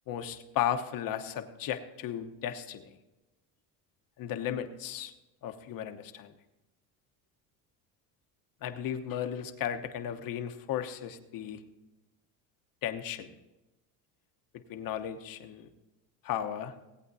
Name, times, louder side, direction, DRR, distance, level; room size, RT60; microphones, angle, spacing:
voice 1, 0.1-2.8 4.2-5.1 5.4-6.3 8.6-11.6 12.8-13.3 14.5-15.7 16.2-16.7, left 10 dB, 55° left, 8 dB, 1.0 m, -35 dB
18.5 x 8.5 x 2.7 m, 1.0 s
supercardioid pair, 90°, 41 cm